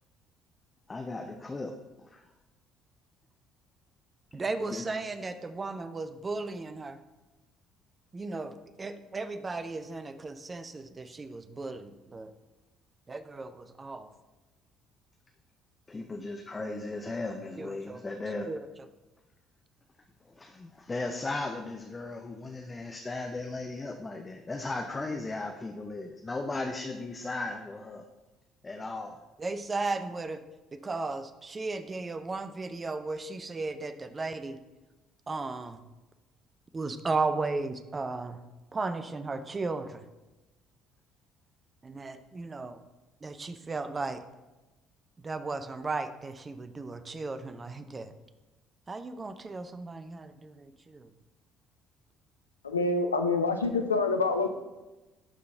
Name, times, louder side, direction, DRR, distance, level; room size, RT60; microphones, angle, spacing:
voice 1, 0.9-2.2 4.6-4.9 15.9-18.5 20.3-28.1 28.6-29.2, left 2 dB, 25° left, 4 dB, 0.6 m, -36 dB
voice 2, 4.3-7.0 8.1-12.3 13.1-14.1 17.6-18.0 18.5-18.6 29.4-30.4 30.8-34.6 35.3-35.8 36.7-38.4 38.7-40.0 41.8-42.8 43.2-44.2 45.2-48.1 48.9-51.0, right 3 dB, 25° right, 10 dB, 0.5 m, -35 dB
voice 3, 52.6-54.5, left 3 dB, 85° left, 6 dB, 0.4 m, -26 dB
11.5 x 3.8 x 3.7 m, 1.1 s
figure-of-eight pair, 50°, 0 cm